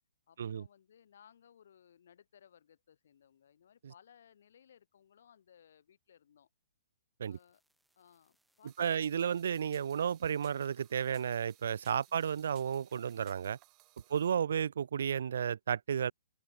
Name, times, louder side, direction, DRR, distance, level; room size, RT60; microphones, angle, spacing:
voice 1, 0.3-6.5 7.3-7.6 8.0-9.4 12.1-12.3 14.1-14.5, left 8 dB, 65° left, 7.4 m, -63 dB
sound 1, 7.2-13.4, right 1 dB, ahead, 3.8 m, -75 dB
sound 2, 8.7-14.3, right 24 dB, 30° right, 4.7 m, -63 dB
voice 2, 8.8-13.6 14.1-16.1, right 8 dB, 65° right, 0.4 m, -32 dB
open air
hypercardioid pair, 135°, 0 cm